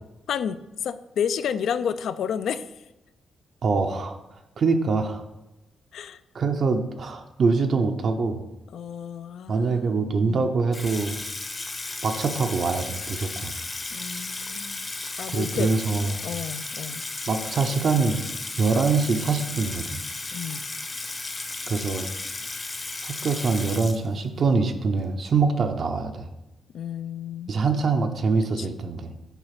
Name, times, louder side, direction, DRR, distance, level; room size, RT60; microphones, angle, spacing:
voice 1, 0.3-2.7 5.9-6.2 8.7-9.9 10.2-10.5 13.9-14.9 15.2-15.7 16.2-17.0 20.3-20.6 26.7-27.6 28.6-28.7, left 8 dB, 70° left, 13 dB, 0.4 m, -31 dB
voice 2, 3.6-4.2 4.6-5.2 6.3-8.4 9.5-11.2 12.0-13.5 15.3-16.2 17.3-18.2 18.6-20.0 21.7-22.1 23.0-26.3 27.5-29.1, right 4 dB, 50° right, 5 dB, 0.6 m, -24 dB
Water tap faucet / Sink (filling or washing), 10.7-24.5, left 3 dB, 25° left, 0.7 m, -34 dB
8.1 x 4.1 x 5.8 m, 0.97 s
cardioid pair, 130°, 0 cm